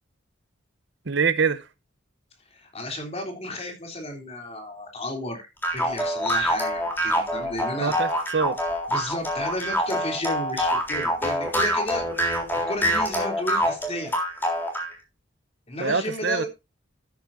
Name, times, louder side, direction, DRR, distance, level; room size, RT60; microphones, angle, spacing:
voice 1, 1.1-1.7 7.8-8.6 15.8-16.5, right 5 dB, 65° right, 0.8 m, -24 dB
voice 2, 2.5-5.5 5.7-8.0 8.9-12.0 12.7-14.1 15.7-16.5, left 1 dB, 35° left, 3.4 m, -33 dB
sound 1, 5.6-14.9, equal, 10° left, 3.6 m, -25 dB
13.5 x 9.4 x 2.7 m
head